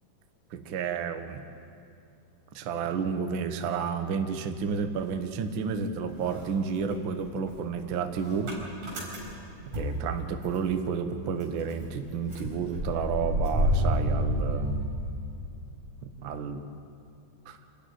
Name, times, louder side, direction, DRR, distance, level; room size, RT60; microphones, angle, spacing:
voice 1, 0.5-1.4 2.5-8.5 9.6-15.1 16.2-16.6 17.5-17.6, right 6 dB, 80° right, 7 dB, 1.1 m, -31 dB
Motor vehicle (road) / Engine starting, 4.7-5.8 6.1-10.8 11.1-11.2 11.4-15.5, equal, 55° right, 5.9 m, -31 dB
28.5 x 13.0 x 9.3 m, 2.5 s
omnidirectional pair, 4.1 m